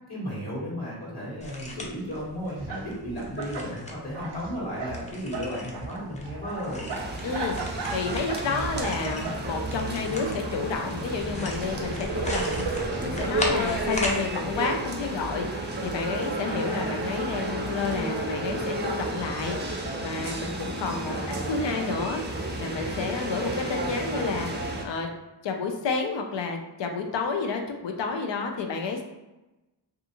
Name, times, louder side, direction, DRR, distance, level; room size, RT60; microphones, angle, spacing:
voice 1, 0.1-6.9 16.5-17.1 20.8-21.6, equal, 60° left, -7 dB, 1.2 m, -34 dB
sound 1, 1.4-14.2, left 1 dB, 15° left, 0.5 m, -38 dB
sound 2, 2.1-2.2 2.5-3.7 4.0-5.0 5.3-10.6 10.9-14.2, right 4 dB, 70° right, 0.6 m, -36 dB
sound 3, 6.9-24.8, right 1 dB, 25° right, 0.6 m, -32 dB
voice 2, 7.2-7.6 7.9-21.1 21.5-25.1 25.4-29.0, left 4 dB, 85° left, 4 dB, 0.5 m, -30 dB
2.4 x 2.4 x 2.8 m, 1.0 s
cardioid pair, 50°, 43 cm